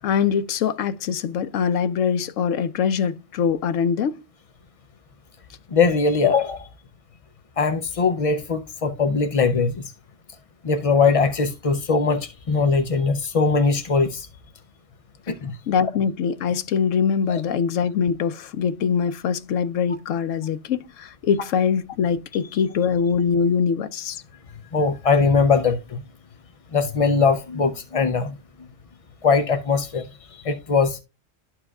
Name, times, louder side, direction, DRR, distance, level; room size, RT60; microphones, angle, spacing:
voice 1, 0.0-4.2 15.7-24.2, left 6 dB, 80° left, 1.0 m, -23 dB
voice 2, 5.7-6.7 7.6-9.9 10.6-14.3 15.3-15.6 17.3-17.4 24.7-26.0 26.7-28.4 29.2-31.0, left 4 dB, 50° left, 0.4 m, -21 dB
12.0 x 4.5 x 2.3 m
omnidirectional pair, 1.3 m